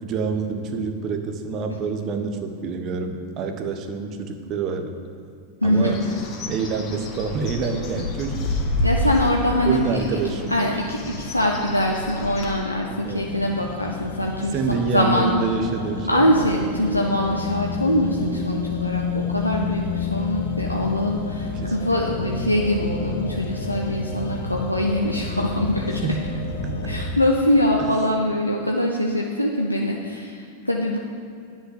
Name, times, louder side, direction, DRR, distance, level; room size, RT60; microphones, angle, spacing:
voice 1, 0.0-4.9 5.6-6.0 6.5-8.4 9.6-10.8 13.0-13.2 14.5-16.3 19.4-19.7 21.5-22.2 26.0-26.2 26.6-26.8, right 4 dB, 35° right, 6 dB, 1.1 m, -27 dB
voice 2, 5.6-6.0 8.8-10.0 10.5-15.3 16.1-26.1 26.8-31.0, left 1 dB, 85° left, -1 dB, 0.8 m, -23 dB
Bird, 5.8-12.5, left 1 dB, 35° left, 2.0 m, -29 dB
sound 1, 13.0-27.1, left 4 dB, 60° left, 1.0 m, -30 dB
10.0 x 5.5 x 8.2 m, 2.5 s
figure-of-eight pair, 90°, 0 cm